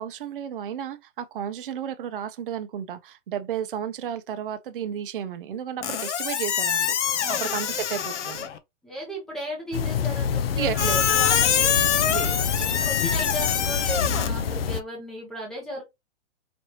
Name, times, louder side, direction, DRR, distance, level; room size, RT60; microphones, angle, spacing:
voice 1, 0.0-8.5 10.5-11.1 12.1-12.9, right 9 dB, 45° right, 0.6 m, -33 dB
Squeak, 5.8-8.6 10.8-14.3, left 9 dB, 70° left, 0.9 m, -25 dB
voice 2, 7.2-7.6 8.8-12.1 12.6-15.8, equal, ahead, 0.7 m, -36 dB
sound 1, 9.7-14.8, left 6 dB, 50° left, 0.5 m, -27 dB
5.2 x 2.9 x 2.9 m
hypercardioid pair, 175°, 37 cm